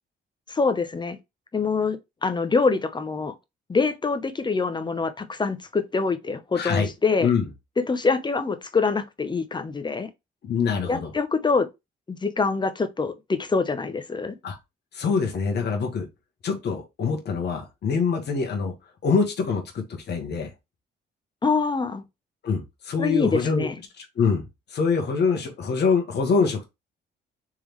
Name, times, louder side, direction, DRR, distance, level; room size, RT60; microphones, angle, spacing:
voice 1, 0.5-1.2 1.5-3.3 3.7-7.3 7.9-10.1 10.9-11.7 12.1-14.4 21.4-22.0 23.0-23.7, left 4 dB, 20° left, 0.7 m, -25 dB
voice 2, 6.6-6.9 7.2-7.5 10.4-11.1 14.4-14.6 14.9-16.1 16.4-18.7 19.0-20.5 22.4-23.7 24.0-26.7, left 5 dB, 55° left, 1.3 m, -24 dB
3.6 x 3.3 x 3.1 m
cardioid pair, 90°, 20 cm